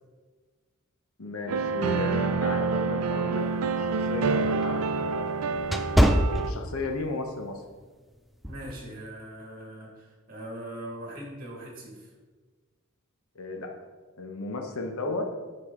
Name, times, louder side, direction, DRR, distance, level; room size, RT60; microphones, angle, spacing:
voice 1, 1.2-3.5 3.8-5.6 6.4-7.6 13.3-13.7 14.2-15.3, left 2 dB, 70° left, 3 dB, 0.8 m, -34 dB
sound 1, 1.5-6.5, right 4 dB, 75° right, 0.4 m, -27 dB
sound 2, 3.4-7.2 7.6-7.8 8.4-8.7, equal, ahead, 0.3 m, -25 dB
voice 2, 8.5-12.1, right 1 dB, 45° right, -1 dB, 1.8 m, -41 dB
9.1 x 4.8 x 3.7 m, 1.4 s
head